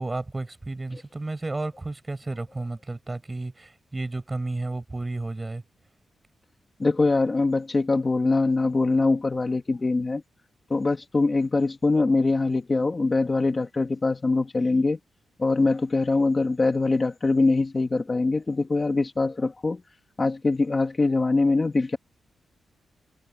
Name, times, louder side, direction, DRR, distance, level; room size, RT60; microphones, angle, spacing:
voice 1, 0.0-5.6, right 2 dB, 15° right, 5.7 m, -32 dB
voice 2, 6.8-10.2 10.7-15.0 15.4-19.8 20.2-22.0, left 3 dB, 25° left, 1.6 m, -23 dB
wide cardioid pair, 155°, 0 cm